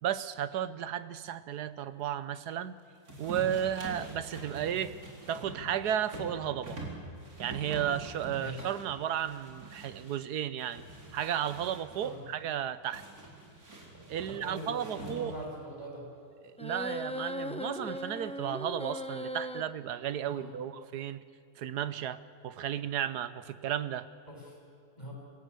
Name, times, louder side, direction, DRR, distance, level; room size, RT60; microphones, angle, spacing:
voice 1, 0.0-2.8 3.2-4.9 5.3-6.8 7.4-10.8 11.1-13.0 14.1-15.3 16.4-21.2 21.6-24.1, right 10 dB, 90° right, 14 dB, 1.4 m, -34 dB
sound 1, 3.1-10.2 10.6-12.1 12.9-15.5, right 2 dB, 70° right, 4.5 m, -45 dB
voice 2, 8.4-8.7 12.0-12.2 14.3-16.0 20.2-20.5 24.3-24.6 24.9-25.1, right 1 dB, 25° left, -1 dB, 6.4 m, -42 dB
sound 2, 16.6-19.6, left 1 dB, 5° left, 0.7 m, -38 dB
25.5 x 16.5 x 8.3 m, 2.3 s
omnidirectional pair, 1.7 m